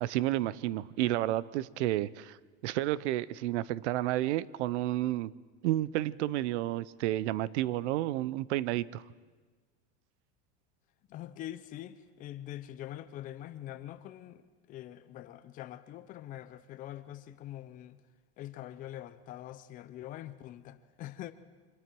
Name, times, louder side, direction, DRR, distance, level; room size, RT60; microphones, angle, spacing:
voice 1, 0.0-2.4 2.6-5.3 5.6-9.0, right 15 dB, 90° right, 0.8 m, -31 dB
voice 2, 11.1-14.4 14.7-18.0 18.4-21.3, left 13 dB, 25° left, 0.7 m, -44 dB
27.0 x 25.0 x 4.7 m
supercardioid pair, 180°, 34 cm